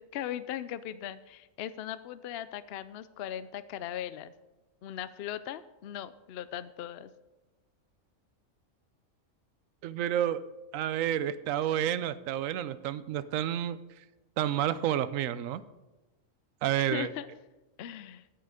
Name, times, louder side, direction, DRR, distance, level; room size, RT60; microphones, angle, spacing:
voice 1, 0.0-4.3 4.8-7.1 16.7-17.3 17.8-18.3, left 11 dB, 65° left, 14 dB, 0.7 m, -39 dB
voice 2, 9.8-10.5 10.7-13.8 14.4-15.6 16.6-17.1, right 11 dB, 90° right, 15 dB, 1.0 m, -30 dB
10.0 x 9.0 x 4.9 m, 1.1 s
omnidirectional pair, 1.3 m